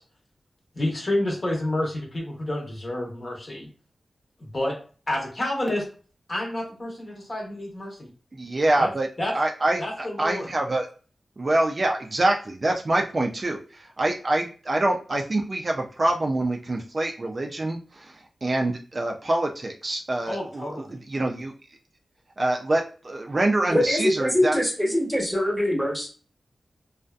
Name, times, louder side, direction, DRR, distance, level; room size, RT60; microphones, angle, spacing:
voice 1, 0.7-3.7 4.4-4.8 5.1-5.9 6.3-8.1 8.8-8.9 9.2-9.3 9.8-10.5 20.3-21.0, left 1 dB, 45° left, -1 dB, 1.0 m, -29 dB
voice 2, 8.3-9.1 9.3-10.9 11.4-20.7 21.1-21.5 22.4-24.6, right 2 dB, 45° right, 2 dB, 0.3 m, -25 dB
voice 3, 23.7-26.1, left 1 dB, 5° right, -2 dB, 1.0 m, -23 dB
2.5 x 2.4 x 2.3 m, 0.38 s
wide cardioid pair, 70°, 0 cm